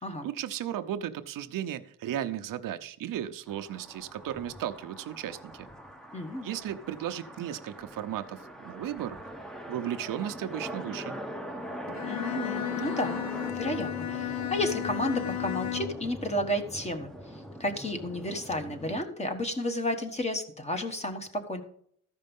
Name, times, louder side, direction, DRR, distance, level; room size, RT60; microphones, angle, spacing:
voice 1, 0.2-5.7 6.4-9.2 9.7-11.1, right 11 dB, 85° right, 0.8 m, -35 dB
sound 1, 3.5-19.0, equal, ahead, 0.9 m, -42 dB
voice 2, 6.1-6.5 12.0-13.2 13.5-21.6, left 1 dB, 20° left, 1.4 m, -32 dB
Bowed string instrument, 11.9-16.1, left 14 dB, 55° left, 0.7 m, -34 dB
14.0 x 5.4 x 5.4 m
cardioid pair, 140°, 32 cm